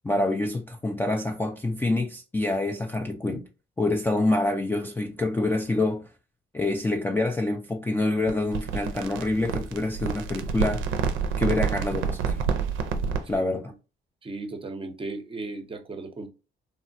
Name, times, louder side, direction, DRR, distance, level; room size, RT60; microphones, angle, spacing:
voice 1, 0.0-3.5 3.8-6.1 6.5-10.9 11.4-12.4 13.3-13.7, left 2 dB, 10° left, 0.3 m, -26 dB
sound 1, 8.3-13.4, right 6 dB, 85° right, 0.5 m, -28 dB
voice 2, 14.2-16.3, right 3 dB, 25° right, 0.6 m, -36 dB
3.2 x 2.1 x 2.5 m
cardioid pair, 90°, 20 cm